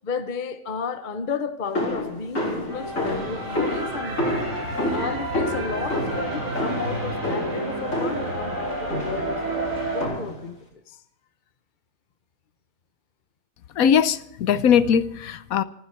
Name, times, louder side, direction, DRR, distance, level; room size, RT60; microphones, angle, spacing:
voice 1, 0.0-4.2 4.9-11.0, left 5 dB, 40° left, 0.9 m, -33 dB
sound 1, 1.7-8.4 8.9-9.4 10.0-10.5, left 1 dB, 65° left, 4.4 m, -29 dB
sound 2, 2.7-10.0, right 1 dB, 65° right, 5.2 m, -30 dB
voice 2, 13.8-15.6, left 8 dB, 80° left, 1.2 m, -20 dB
27.0 x 10.0 x 4.5 m
omnidirectional pair, 1.5 m